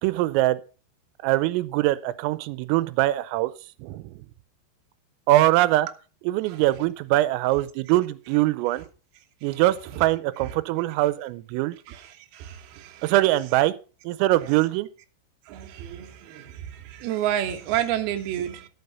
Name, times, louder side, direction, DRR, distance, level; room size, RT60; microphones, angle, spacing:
voice 1, 0.0-0.6 1.2-3.5 3.8-4.2 5.3-5.9 6.2-8.9 9.4-11.8 13.0-13.7 14.0-14.9, right 16 dB, 90° right, 3.4 m, -22 dB
voice 2, 12.3-13.1 15.5-18.7, right 11 dB, 65° right, 2.8 m, -30 dB
13.0 x 7.5 x 5.5 m
omnidirectional pair, 5.8 m